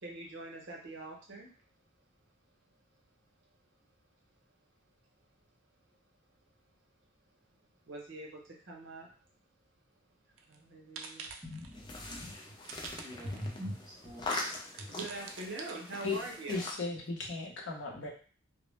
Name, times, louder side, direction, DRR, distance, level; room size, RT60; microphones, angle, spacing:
voice 1, 0.0-1.5 7.9-9.1 10.5-11.4 12.6-13.2 14.2-14.3 14.9-16.7, right 2 dB, 70° right, -1 dB, 0.7 m, -44 dB
sound 1, 10.4-10.6 11.0-11.8 12.6-13.6 14.0-14.1 14.7-16.3, right 5 dB, 90° right, 0.3 m, -47 dB
voice 2, 11.4-12.3 13.0-14.3 14.8-14.9, left 1 dB, 20° right, -3 dB, 0.6 m, -43 dB
sound 2, 11.7-16.7, left 2 dB, 25° left, 0.3 m, -42 dB
voice 3, 16.5-18.1, left 3 dB, 65° left, 0 dB, 0.6 m, -36 dB
2.0 x 2.0 x 3.1 m, 0.40 s
head